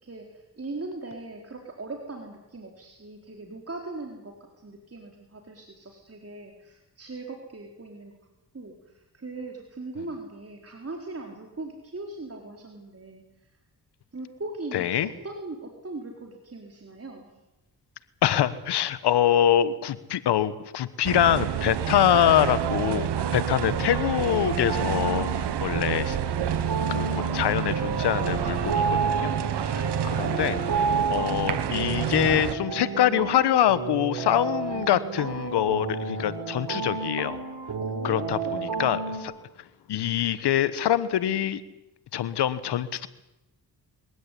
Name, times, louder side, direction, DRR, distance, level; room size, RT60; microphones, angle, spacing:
voice 1, 0.0-8.2 8.5-13.5 14.1-17.4 37.8-38.6, right 2 dB, 35° right, 1 dB, 4.1 m, -40 dB
voice 2, 14.7-15.1 18.2-26.2 26.9-29.3 29.6-30.6 31.1-37.4 38.0-39.3 39.9-41.6 42.1-43.1, left 11 dB, 90° left, 15 dB, 1.3 m, -24 dB
sound 1, 21.0-32.5, right 10 dB, 85° right, 1.3 m, -29 dB
sound 2, 22.3-39.2, right 4 dB, 60° right, 3.9 m, -31 dB
22.5 x 16.0 x 10.0 m, 0.96 s
cardioid pair, 60°, 39 cm